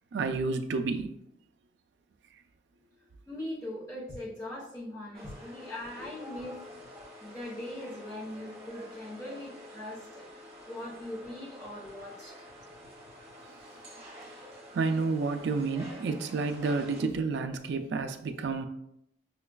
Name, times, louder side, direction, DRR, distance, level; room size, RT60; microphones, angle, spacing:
voice 1, 0.1-1.1 14.7-18.7, right 4 dB, 75° right, 0.3 m, -30 dB
voice 2, 3.3-6.9 7.2-12.4, left 1 dB, 15° left, 0.8 m, -41 dB
sound 1, 5.1-17.0, left 1 dB, 35° right, 1.0 m, -48 dB
5.7 x 2.3 x 2.2 m
head